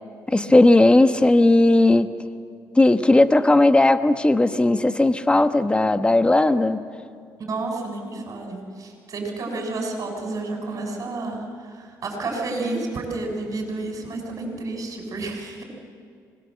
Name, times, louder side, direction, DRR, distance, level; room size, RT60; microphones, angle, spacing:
voice 1, 0.3-2.1 2.8-6.8, left 2 dB, 15° left, 10 dB, 1.1 m, -17 dB
voice 2, 7.4-15.6, right 2 dB, 50° right, 1 dB, 6.6 m, -30 dB
25.5 x 20.5 x 7.6 m, 2.2 s
cardioid pair, 85°, 7 cm